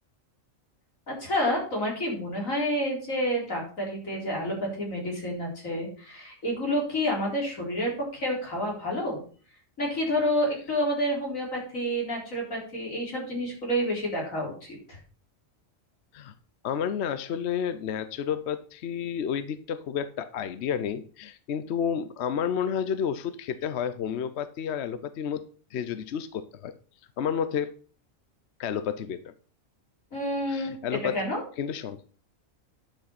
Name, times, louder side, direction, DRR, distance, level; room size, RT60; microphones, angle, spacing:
voice 1, 1.1-9.2 9.8-15.0 30.1-30.8 31.1-31.4, equal, 80° left, -1 dB, 4.5 m, -29 dB
voice 2, 16.6-25.4 25.7-26.7 27.2-27.7 28.6-29.3 30.5-31.2 31.6-32.0, left 8 dB, 60° left, 13 dB, 0.9 m, -31 dB
10.0 x 6.3 x 5.8 m, 0.41 s
omnidirectional pair, 1.4 m